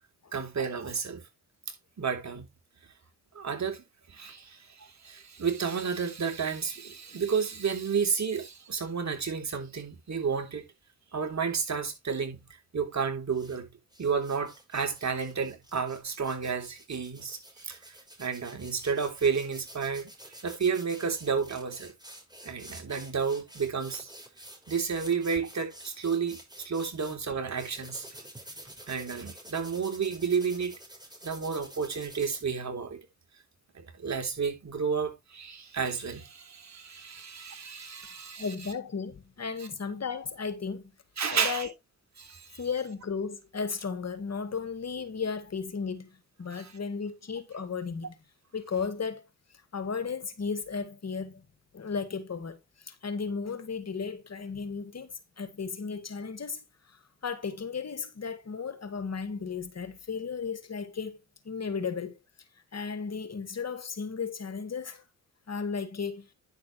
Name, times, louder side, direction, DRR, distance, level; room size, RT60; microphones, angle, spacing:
voice 1, 0.3-1.2 2.0-2.5 3.3-10.6 11.1-12.4 12.7-13.7 14.0-20.1 20.4-21.9 22.4-24.1 24.7-28.1 28.9-30.7 31.2-33.0 33.7-38.5 41.2-41.7 42.2-42.6 46.5-46.7, right 6 dB, 45° right, 3.4 m, -31 dB
sound 1, 13.3-13.6 13.9-27.2 27.6-32.4, right 1 dB, 10° right, 5.9 m, -49 dB
voice 2, 38.4-40.9 41.3-41.7 42.6-48.2 48.5-49.3 49.7-51.4 51.7-61.2 61.5-62.1 62.7-65.0 65.5-66.3, left 5 dB, 40° left, 2.0 m, -35 dB
10.5 x 6.7 x 3.1 m
hypercardioid pair, 50°, 39 cm